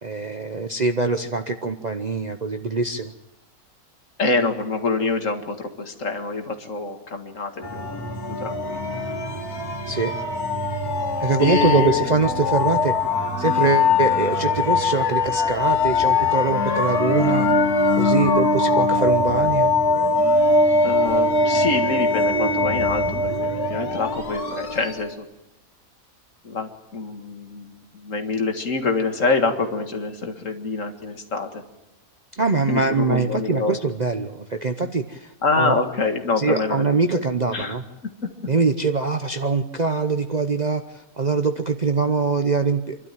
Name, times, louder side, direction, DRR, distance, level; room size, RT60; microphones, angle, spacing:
voice 1, 0.0-3.1 9.9-10.1 11.2-12.9 13.4-17.5 18.0-19.7 32.3-35.8 36.4-37.8 38.5-43.0, right 4 dB, 40° right, 6 dB, 0.7 m, -23 dB
voice 2, 4.2-9.0 11.4-12.1 20.8-25.3 26.4-31.6 32.7-33.8 35.4-36.8 37.1-37.2 37.5-37.8, left 3 dB, 55° left, 5 dB, 2.2 m, -26 dB
sound 1, 7.6-25.1, left 3 dB, 85° left, 2.8 m, -21 dB
27.0 x 12.5 x 9.0 m, 0.97 s
omnidirectional pair, 1.6 m